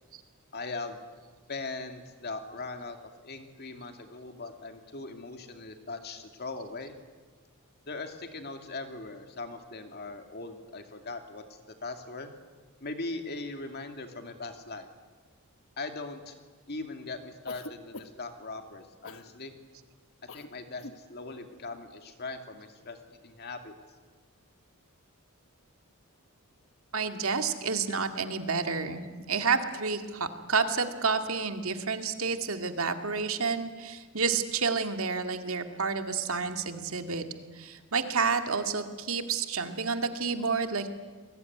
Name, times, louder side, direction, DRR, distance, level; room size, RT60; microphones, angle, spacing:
voice 1, 0.5-1.0 1.5-3.0 3.2-6.9 7.9-12.3 12.8-14.9 15.8-16.3 16.7-19.5 20.3-23.7, left 3 dB, 45° left, 6 dB, 2.6 m, -40 dB
Cough, 17.5-18.3 19.0-19.3 20.3-20.5 20.8-21.0, left 2 dB, 65° left, 1.3 m, -44 dB
voice 2, 26.9-37.2 37.5-40.9, right 5 dB, 65° right, 7 dB, 2.2 m, -30 dB
29.0 x 21.5 x 9.6 m, 1.4 s
head